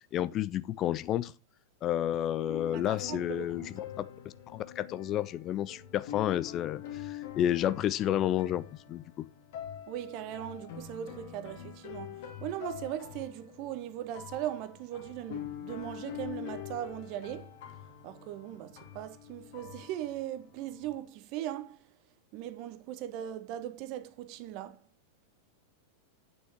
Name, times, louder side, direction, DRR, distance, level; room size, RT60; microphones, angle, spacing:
voice 1, 0.1-1.3 1.8-3.6 4.0-4.1 4.5-8.6 8.9-9.0, left 11 dB, 35° left, 0.6 m, -30 dB
sound 1, 2.5-21.0, left 10 dB, 50° left, 2.7 m, -45 dB
voice 2, 2.7-3.7 9.9-17.6 18.0-21.9 22.3-24.8, right 12 dB, 45° right, 1.1 m, -39 dB
9.4 x 6.5 x 4.6 m
figure-of-eight pair, 90°, 0 cm